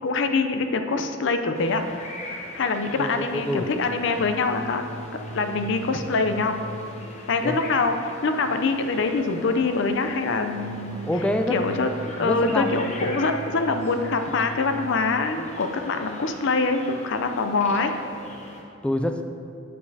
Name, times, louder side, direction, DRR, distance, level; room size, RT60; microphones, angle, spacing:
voice 1, 0.0-1.9 2.5-4.8 5.3-6.6 7.3-11.0 11.5-11.9 12.2-17.9, left 3 dB, 65° left, 7 dB, 0.5 m, -24 dB
sound 1, 1.5-18.6, left 1 dB, 35° left, 0.9 m, -41 dB
voice 2, 3.0-3.7 7.4-7.5 11.0-11.6 12.2-12.8 18.8-19.2, left 1 dB, 5° left, 5 dB, 0.3 m, -26 dB
sound 2, 3.9-7.3 10.3-15.3, right 1 dB, 60° right, 0.5 m, -39 dB
8.3 x 7.1 x 2.8 m, 2.6 s
head